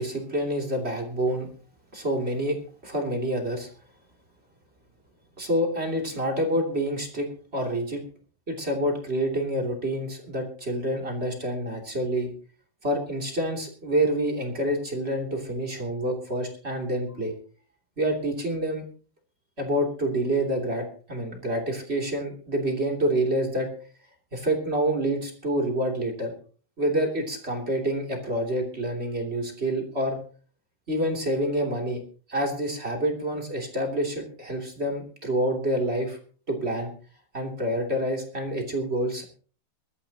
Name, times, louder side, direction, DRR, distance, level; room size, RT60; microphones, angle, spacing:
voice 1, 0.0-1.5 1.9-2.6 2.8-3.7 5.4-8.0 8.5-12.3 12.8-17.3 18.0-18.8 19.6-23.7 24.3-26.3 26.8-30.2 30.9-32.0 32.3-36.2 36.5-36.9 37.3-39.2, right 1 dB, 20° right, 1 dB, 2.5 m, -27 dB
21.5 x 14.0 x 2.9 m, 0.41 s
omnidirectional pair, 4.8 m